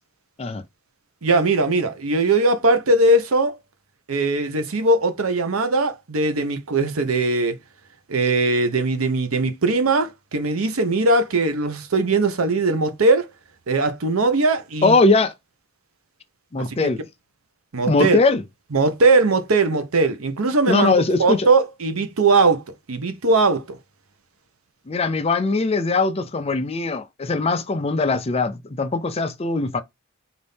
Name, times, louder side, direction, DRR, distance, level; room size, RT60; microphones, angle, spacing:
voice 1, 1.2-3.5 4.1-7.6 8.1-13.3 13.7-14.9 17.7-18.2 18.7-20.9 21.2-22.6 22.9-23.8, right 3 dB, 85° right, 0.8 m, -20 dB
voice 2, 14.8-15.3 16.5-17.0 17.9-18.4 20.7-21.5 24.9-29.8, left 3 dB, 30° left, 0.5 m, -20 dB
4.1 x 2.6 x 3.4 m
head